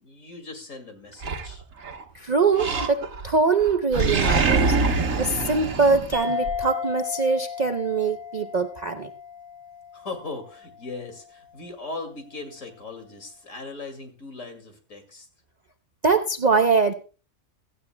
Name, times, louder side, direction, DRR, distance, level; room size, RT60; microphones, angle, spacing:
voice 1, 0.0-1.6 9.9-15.3, left 3 dB, 65° left, 5 dB, 2.6 m, -38 dB
Animal, 1.2-2.0 2.6-3.3 3.6-6.6, right 4 dB, 70° right, 1.6 m, -24 dB
voice 2, 2.1-4.8 5.2-9.1 16.0-16.9, right 4 dB, 45° right, 6 dB, 0.6 m, -23 dB
sound 1, 6.1-11.0, left 6 dB, 10° left, 3.6 m, -34 dB
17.0 x 14.0 x 2.2 m, 0.36 s
omnidirectional pair, 1.4 m